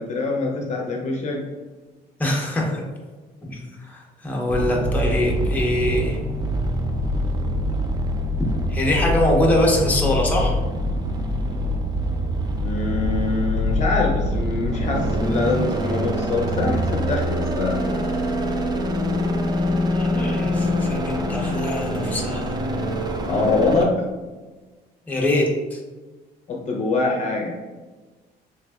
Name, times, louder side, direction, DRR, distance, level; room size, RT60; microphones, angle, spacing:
voice 1, 0.0-1.4 12.6-17.8 23.3-24.0 26.5-27.6, left 3 dB, 45° left, -1 dB, 0.6 m, -24 dB
voice 2, 2.2-2.8 3.5-6.2 8.7-10.6 19.9-22.5 25.1-25.8, left 1 dB, 10° left, -2 dB, 0.7 m, -23 dB
sound 1, 4.5-23.8, equal, 25° right, 0.4 m, -24 dB
3.4 x 3.2 x 2.2 m, 1.3 s
cardioid pair, 110°, 17 cm